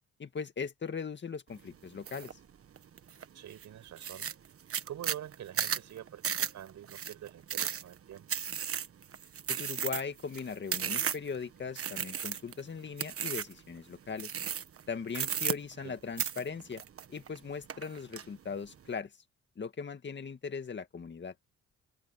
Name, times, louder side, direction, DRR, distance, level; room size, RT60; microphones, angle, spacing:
voice 1, 0.2-2.3 9.5-14.3 14.9-16.8 17.1-19.1 19.6-21.3, left 5 dB, 35° left, 2.0 m, -39 dB
sound 1, 2.1-2.3 2.8-3.2 3.6-3.7 4.0-11.4 11.8-12.6 13.0-13.6 14.2-14.8 15.1-15.9 16.2-17.4 17.7-18.2, right 8 dB, 50° right, 1.5 m, -34 dB
voice 2, 3.3-4.3 4.8-8.3 15.8-16.0, right 11 dB, 70° right, 5.7 m, -46 dB
cardioid pair, 90°, 30 cm